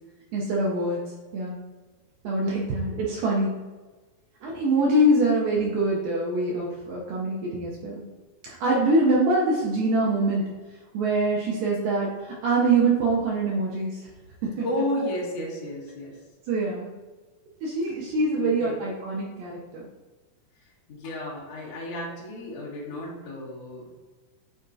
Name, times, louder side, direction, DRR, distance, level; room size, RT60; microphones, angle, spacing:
voice 1, 0.3-1.0 1.3-1.6 2.2-3.5 4.4-8.0 8.4-10.4 10.9-14.0 14.4-14.7 16.5-16.9 17.6-19.9, right 2 dB, 75° right, -4 dB, 2.1 m, -24 dB
voice 2, 14.6-16.1 18.6-18.7 20.9-24.1, left 1 dB, 50° left, -6 dB, 2.2 m, -32 dB
9.0 x 4.2 x 2.7 m, 1.3 s
omnidirectional pair, 4.8 m